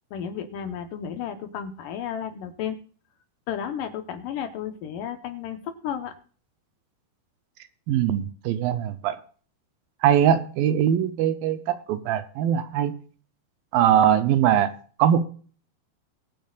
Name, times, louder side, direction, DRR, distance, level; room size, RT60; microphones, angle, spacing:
voice 1, 0.1-2.8 3.5-6.1, left 8 dB, 70° left, 8 dB, 2.4 m, -33 dB
voice 2, 7.9-9.2 10.0-12.9 13.7-14.7 15.0-15.2, right 10 dB, 75° right, 11 dB, 2.4 m, -21 dB
22.5 x 9.1 x 2.4 m, 0.44 s
omnidirectional pair, 4.4 m